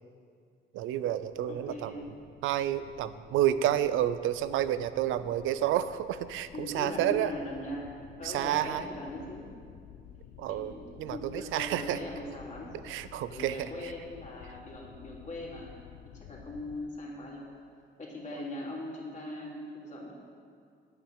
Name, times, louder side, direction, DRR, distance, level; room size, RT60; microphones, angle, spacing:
voice 1, 0.7-1.9 2.4-7.3 8.2-8.9 10.4-10.7 11.0-12.0 12.8-13.7, right 12 dB, 85° right, 13 dB, 0.5 m, -30 dB
sound 1, 0.9-16.8, left 9 dB, 85° left, 0.6 m, -53 dB
voice 2, 1.5-2.1 6.5-9.5 10.5-12.8 13.3-15.7 16.1-17.5 18.0-20.1, left 1 dB, 35° left, -4 dB, 3.0 m, -40 dB
10.0 x 8.1 x 6.5 m, 2.2 s
cardioid pair, 90°, 20 cm